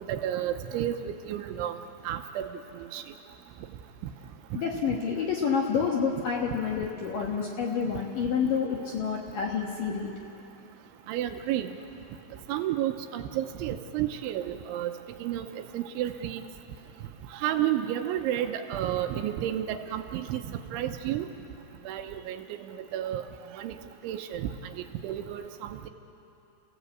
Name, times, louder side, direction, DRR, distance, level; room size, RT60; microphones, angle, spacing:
voice 1, 0.1-1.8 2.1-2.5 2.8-3.0 11.1-11.8 12.5-14.9 15.2-16.4 17.3-21.3 21.9-23.3 23.5-23.8 24.0-24.7 25.0-25.9, right 11 dB, 80° right, 7 dB, 3.1 m, -31 dB
voice 2, 4.5-10.1, left 6 dB, 65° left, 0 dB, 2.2 m, -28 dB
29.5 x 16.5 x 8.2 m, 2.8 s
omnidirectional pair, 5.7 m